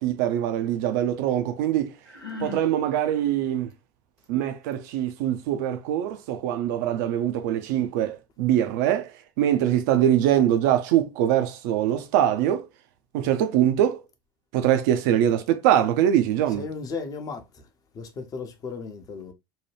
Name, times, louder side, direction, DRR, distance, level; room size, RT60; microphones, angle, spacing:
voice 1, 0.0-1.9 2.4-3.7 4.3-9.1 9.4-12.7 13.1-14.0 14.5-16.6, right 11 dB, 55° right, 0.4 m, -23 dB
Sigh, 2.1-2.7, left 4 dB, 85° left, 0.8 m, -37 dB
voice 2, 16.5-17.7 17.9-19.3, left 4 dB, 35° left, 0.7 m, -35 dB
2.7 x 2.2 x 3.1 m
figure-of-eight pair, 70°, 11 cm